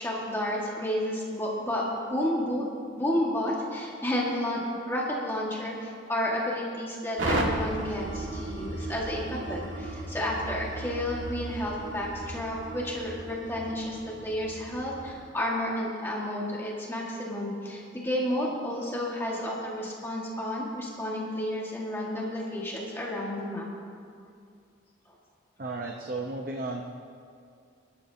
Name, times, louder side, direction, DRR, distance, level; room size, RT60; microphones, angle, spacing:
voice 1, 0.0-1.8 2.1-2.6 3.0-4.6 4.9-23.6 25.1-25.2, left 1 dB, 15° left, -4 dB, 1.7 m, -31 dB
sound 1, 7.2-15.3, right 1 dB, 85° right, 1.9 m, -35 dB
voice 2, 25.6-26.8, right 2 dB, 50° right, 1 dB, 0.8 m, -34 dB
25.5 x 12.0 x 2.8 m, 2.3 s
head